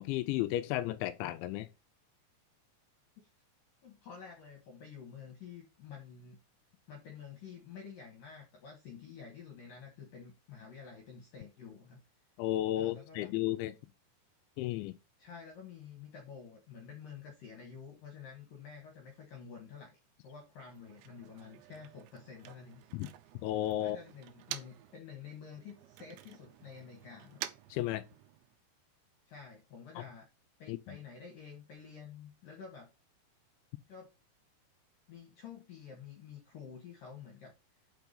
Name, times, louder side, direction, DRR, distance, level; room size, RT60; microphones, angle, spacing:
voice 1, 0.0-1.7 12.4-13.7 14.6-15.0 22.9-23.1 23.4-24.0 27.7-28.0 30.7-30.8, left 14 dB, 80° left, 2.7 m, -33 dB
voice 2, 3.8-6.4 6.9-12.0 12.8-13.3 15.2-20.0 20.2-22.8 23.8-27.4 29.3-30.3 30.6-32.9 33.9-34.1 35.1-37.5, left 6 dB, 60° left, 2.5 m, -50 dB
Motor vehicle (road), 20.5-25.0 25.3-28.6, right 13 dB, 80° right, 2.8 m, -49 dB
6.3 x 5.9 x 5.4 m
omnidirectional pair, 5.7 m